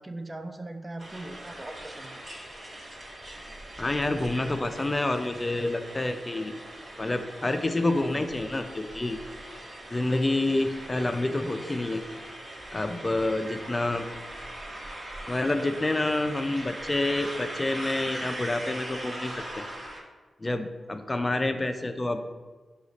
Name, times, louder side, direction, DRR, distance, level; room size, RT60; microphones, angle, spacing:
voice 1, 0.0-2.2, right 2 dB, 25° right, 7 dB, 0.4 m, -40 dB
sound 1, 1.0-20.0, right 1 dB, 45° right, 1.4 m, -41 dB
voice 2, 3.8-6.6 7.0-9.2 9.9-12.0 12.7-14.0 15.3-19.7 20.4-22.3, left 2 dB, 30° left, 7 dB, 0.4 m, -28 dB
4.9 x 2.4 x 4.0 m, 1.3 s
supercardioid pair, 40°, 0 cm